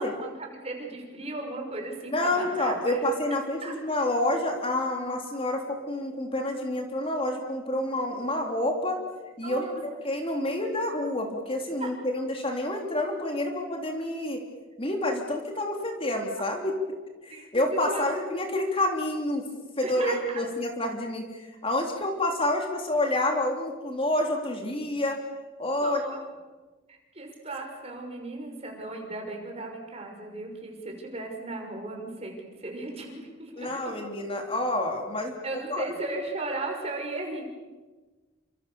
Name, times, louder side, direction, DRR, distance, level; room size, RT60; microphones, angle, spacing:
voice 1, 0.0-3.0 3.6-3.7 9.4-9.8 11.8-11.9 17.3-17.4 17.9-18.1 19.8-20.4 25.8-26.2 26.9-32.3 32.6-33.9 35.4-37.5, right 2 dB, 30° right, 2 dB, 6.2 m, -36 dB
voice 2, 2.1-9.0 9.4-9.7 10.0-14.4 14.8-16.8 17.2-19.4 19.8-25.2 25.6-26.0 33.6-35.3 35.7-35.9, left 1 dB, 30° left, 2 dB, 3.4 m, -28 dB
29.5 x 26.5 x 7.1 m, 1.3 s
head